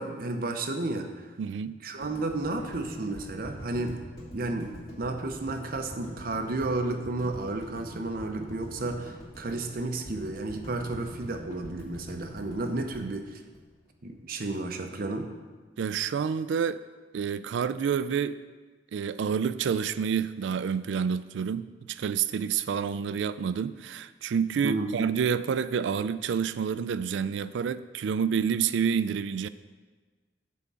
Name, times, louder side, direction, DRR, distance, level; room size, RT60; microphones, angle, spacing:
voice 1, 0.0-1.3 1.8-4.0 4.3-4.7 5.0-13.4 14.0-15.3 24.6-24.9, right 2 dB, 55° right, 0.8 m, -32 dB
voice 2, 1.4-1.8 13.0-13.1 15.8-16.8 17.1-18.4 18.9-29.5, right 7 dB, 85° right, 0.3 m, -28 dB
sound 1, 2.0-14.2, right 1 dB, 25° left, 2.3 m, -44 dB
9.4 x 3.7 x 6.8 m
head